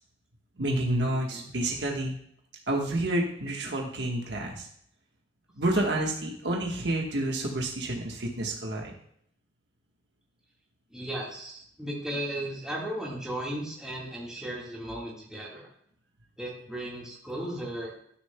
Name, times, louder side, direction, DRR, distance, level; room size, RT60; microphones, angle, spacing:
voice 1, 0.6-2.2 2.7-4.7 5.6-8.9, right 1 dB, 75° right, 0 dB, 1.3 m, -29 dB
voice 2, 1.1-1.4 10.9-15.7 16.4-17.9, right 1 dB, 5° right, -4 dB, 1.6 m, -36 dB
13.0 x 6.6 x 2.2 m, 0.68 s
head